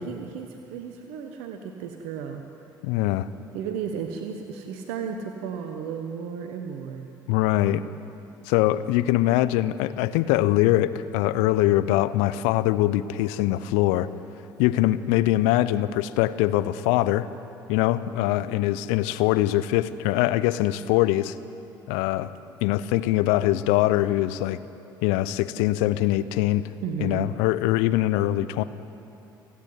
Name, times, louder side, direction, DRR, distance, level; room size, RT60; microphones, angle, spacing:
voice 1, 0.0-2.4 3.5-7.1 26.8-27.3, right 7 dB, 70° right, 4 dB, 1.2 m, -34 dB
voice 2, 2.8-3.3 7.3-7.8 8.5-14.1 14.6-17.3 17.7-21.3 21.9-22.3 22.6-24.6 25.0-26.7 27.0-28.6, left 15 dB, 70° left, 15 dB, 0.7 m, -23 dB
28.0 x 9.9 x 9.6 m, 2.8 s
hypercardioid pair, 55°, 11 cm